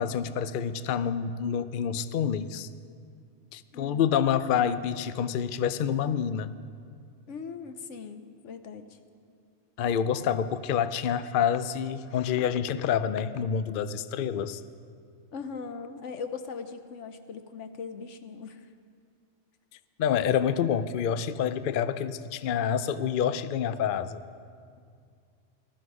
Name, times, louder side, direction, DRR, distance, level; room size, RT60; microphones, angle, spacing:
voice 1, 0.0-2.7 3.5-6.5 9.8-14.6 20.0-24.2, left 8 dB, 60° left, 13 dB, 0.6 m, -27 dB
voice 2, 3.7-4.1 7.3-8.9 15.3-18.7, left 5 dB, 80° left, 8 dB, 1.2 m, -40 dB
19.5 x 13.0 x 4.8 m, 2.2 s
omnidirectional pair, 1.2 m